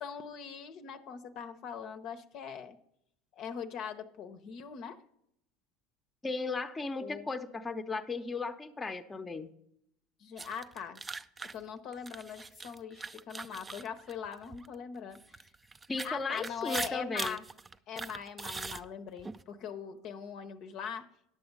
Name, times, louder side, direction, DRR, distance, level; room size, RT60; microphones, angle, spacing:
voice 1, 0.0-2.8 3.3-5.0 7.0-7.3 10.2-11.0 11.5-15.5 16.0-17.4 17.9-21.1, left 7 dB, 50° left, 9 dB, 0.7 m, -41 dB
voice 2, 6.2-9.5 15.9-17.4, left 3 dB, 20° left, 9 dB, 0.7 m, -36 dB
sound 1, 10.4-14.7 15.1-19.4, right 3 dB, 20° right, 0.4 m, -41 dB
10.5 x 6.9 x 5.2 m, 0.75 s
hypercardioid pair, 75°, 0 cm